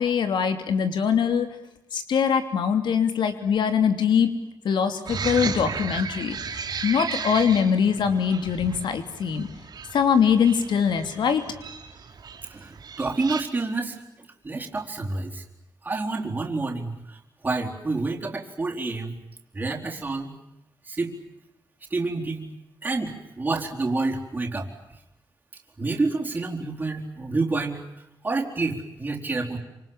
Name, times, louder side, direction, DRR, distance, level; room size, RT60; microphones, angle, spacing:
voice 1, 0.0-1.5 1.9-4.3 4.6-9.5 9.9-11.4, left 7 dB, 85° left, 8 dB, 3.0 m, -23 dB
sound 1, 5.1-13.4, right 5 dB, 60° right, 3.9 m, -35 dB
voice 2, 12.5-14.0 14.4-15.4 15.8-17.2 17.4-19.2 19.5-20.4 20.8-21.1 21.9-22.5 22.8-24.7 25.8-27.9 28.2-29.6, right 3 dB, 25° right, 0 dB, 4.4 m, -28 dB
28.0 x 27.0 x 7.4 m, 0.87 s
wide cardioid pair, 160°, 8 cm